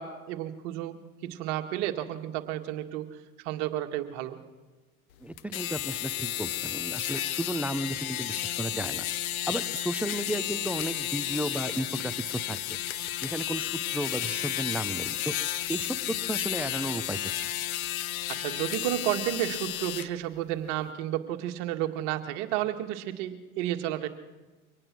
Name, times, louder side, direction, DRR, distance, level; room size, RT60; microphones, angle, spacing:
voice 1, 0.0-3.1 3.4-4.4 18.4-24.1, right 13 dB, 55° right, 6 dB, 2.0 m, -32 dB
voice 2, 5.2-9.1 9.5-12.6 13.2-15.3 15.7-16.0 16.3-17.2, right 1 dB, 5° right, 13 dB, 0.6 m, -33 dB
sound 1, 5.4-20.1, left 13 dB, 70° left, 1.1 m, -32 dB
24.0 x 18.5 x 6.2 m, 1.2 s
hypercardioid pair, 100°, 44 cm